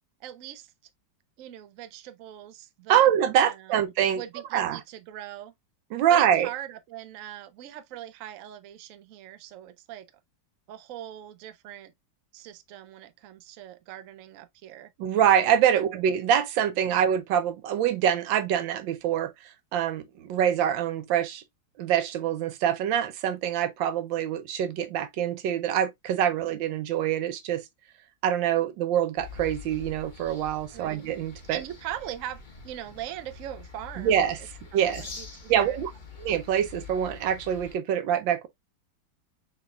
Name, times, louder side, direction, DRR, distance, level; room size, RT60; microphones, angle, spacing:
voice 1, 0.2-0.7 1.4-3.1 3.4-3.7 4.1-5.5 6.1-10.1 10.7-11.9 12.3-14.9 15.7-16.0 16.8-17.0 30.7-31.0 31.5-34.2 34.7-35.8, right 12 dB, 70° right, 0.8 m, -41 dB
voice 2, 2.9-4.2 4.5-4.8 5.9-6.5 15.0-21.4 21.8-27.6 28.2-31.6 34.0-34.4 34.7-35.1 35.5-35.9 36.2-38.5, right 9 dB, 90° right, 1.4 m, -25 dB
sound 1, 29.2-37.8, left 4 dB, 30° left, 1.0 m, -45 dB
6.1 x 3.4 x 2.2 m
omnidirectional pair, 2.0 m